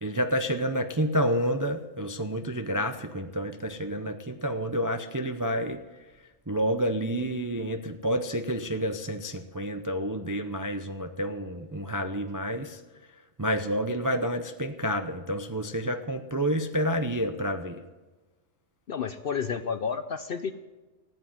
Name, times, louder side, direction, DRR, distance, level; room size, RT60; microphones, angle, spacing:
voice 1, 0.0-5.8 6.5-12.8 13.1-17.8, equal, 25° right, 7 dB, 0.4 m, -29 dB
voice 2, 18.9-20.5, left 6 dB, 55° left, 11 dB, 0.7 m, -31 dB
15.0 x 8.5 x 9.3 m, 1.2 s
omnidirectional pair, 1.5 m